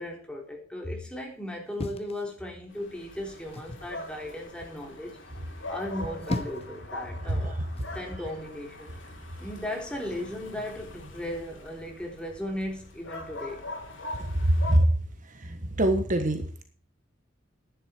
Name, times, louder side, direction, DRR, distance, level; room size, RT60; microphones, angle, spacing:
voice 1, 0.0-5.2 5.7-7.6 7.9-8.9 9.4-13.7, left 1 dB, 5° left, 0 dB, 3.5 m, -36 dB
sound 1, 1.8-2.8 3.5-3.9 5.9-6.8 7.8-8.0, left 1 dB, 30° left, 1.1 m, -36 dB
sound 2, 2.7-14.8, left 2 dB, 70° left, 3.8 m, -42 dB
voice 2, 15.8-16.6, right 1 dB, 40° right, 7 dB, 1.4 m, -22 dB
11.0 x 10.5 x 4.5 m, 0.42 s
head